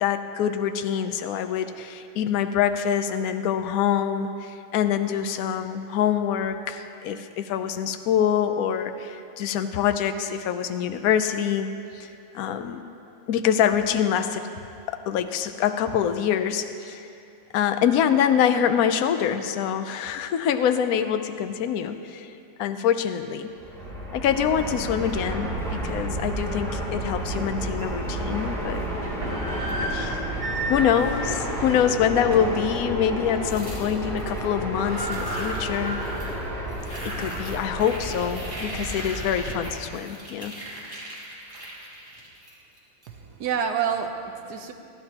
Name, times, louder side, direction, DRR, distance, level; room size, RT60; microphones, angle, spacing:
voice 1, 0.0-11.7 11.9-12.1 12.3-12.8 13.3-14.4 14.9-17.0 17.5-22.3 22.6-23.5 24.1-28.8 29.9-30.2 30.7-36.1 37.0-40.5, left 8 dB, 65° left, 9 dB, 0.9 m, -25 dB
Fixed-wing aircraft airplane, 23.5-39.9, right 1 dB, ahead, 2.7 m, -31 dB
sound 1, 27.1-27.2 27.8-27.9 28.8-32.6 33.1-33.2 33.6-34.0 34.2-34.3 34.5-36.5 36.9-37.0 37.6-38.9, right 1 dB, 90° right, 3.3 m, -35 dB
sound 2, 33.4-34.4 34.9-36.4 36.7-43.1, equal, 15° right, 2.5 m, -38 dB
voice 2, 43.1-44.7, right 7 dB, 65° right, 5 dB, 1.2 m, -28 dB
21.5 x 14.0 x 2.9 m, 2.6 s
omnidirectional pair, 2.1 m